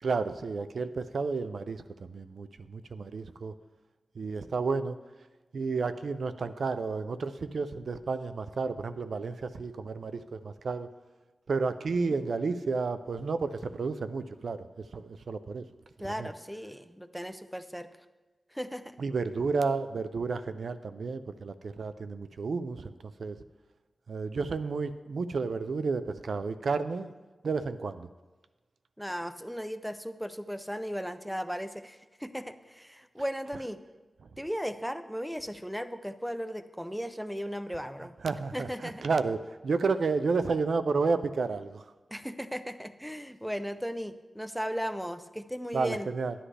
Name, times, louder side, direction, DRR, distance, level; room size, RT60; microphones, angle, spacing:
voice 1, 0.0-3.5 4.2-5.0 5.5-10.9 11.5-14.7 14.9-15.7 16.0-16.3 19.0-22.9 23.2-23.4 24.1-27.1 27.4-28.1 38.2-41.8 45.7-46.3, right 4 dB, 85° right, 12 dB, 0.4 m, -31 dB
voice 2, 16.0-17.9 18.5-19.0 29.0-33.8 34.4-38.1 38.5-39.1 42.1-46.1, equal, ahead, 11 dB, 0.6 m, -36 dB
11.0 x 10.0 x 3.3 m, 1.2 s
wide cardioid pair, 65°, 0 cm